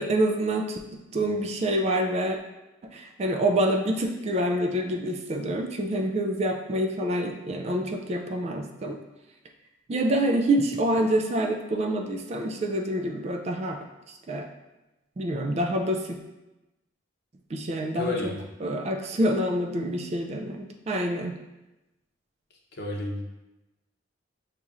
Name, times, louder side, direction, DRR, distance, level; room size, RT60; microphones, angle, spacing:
voice 1, 0.0-2.4 2.9-9.0 9.9-14.5 15.2-16.0 17.5-18.1 18.6-21.3, right 1 dB, 30° right, 3 dB, 0.3 m, -27 dB
voice 2, 17.9-18.4 22.7-23.2, left 2 dB, 55° left, 0 dB, 0.7 m, -31 dB
6.6 x 2.9 x 2.4 m, 1.0 s
head